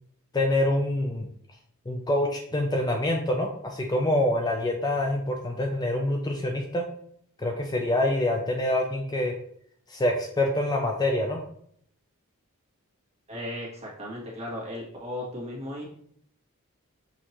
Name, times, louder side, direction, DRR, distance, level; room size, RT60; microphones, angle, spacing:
voice 1, 0.3-1.3 1.9-6.9 7.4-9.4 9.9-11.4, left 1 dB, 20° left, 2 dB, 0.4 m, -26 dB
voice 2, 13.3-15.8, left 1 dB, 30° right, -5 dB, 1.6 m, -36 dB
6.4 x 2.8 x 2.9 m, 0.65 s
head